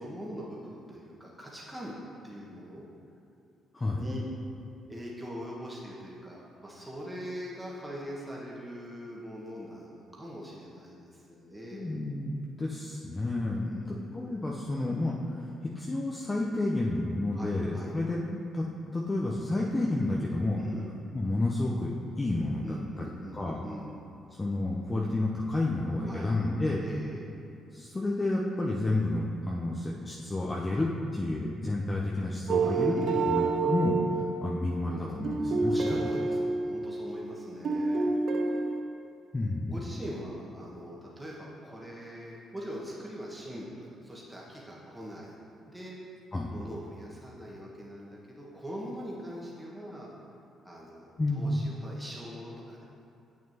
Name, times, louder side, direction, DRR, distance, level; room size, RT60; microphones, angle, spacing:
voice 1, 0.0-1.9 2.2-2.8 3.9-4.2 4.9-12.0 13.6-14.0 17.3-17.9 20.6-20.9 22.6-23.9 26.0-26.3 26.8-27.2 32.5-33.4 35.7-38.1 39.7-45.4 45.7-45.9 46.5-50.1 50.6-52.8, equal, 10° right, -5 dB, 1.4 m, -42 dB
voice 2, 11.7-12.3 12.6-18.6 18.9-20.6 21.1-21.9 22.2-23.6 24.3-26.8 27.7-33.9 34.4-36.1 39.3-39.8 46.3-46.5 51.2-51.6, left 2 dB, 25° left, -3 dB, 0.7 m, -30 dB
sound 1, 32.5-37.4 37.6-38.8, right 3 dB, 55° right, 0.5 m, -29 dB
8.7 x 6.2 x 2.8 m, 2.5 s
hypercardioid pair, 45°, 0 cm